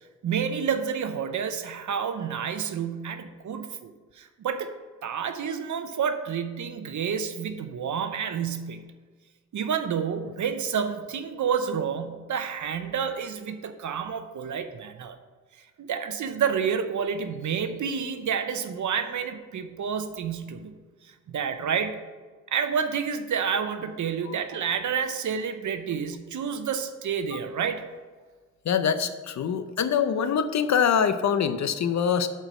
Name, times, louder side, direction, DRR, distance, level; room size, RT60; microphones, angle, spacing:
voice 1, 0.2-4.7 5.0-8.9 9.5-15.2 15.8-20.7 21.0-22.0 22.5-27.9, right 7 dB, 70° right, 9 dB, 0.7 m, -29 dB
voice 2, 28.6-32.3, left 7 dB, 65° left, 10 dB, 0.6 m, -24 dB
7.9 x 4.5 x 6.2 m, 1.4 s
wide cardioid pair, 175°, 30 cm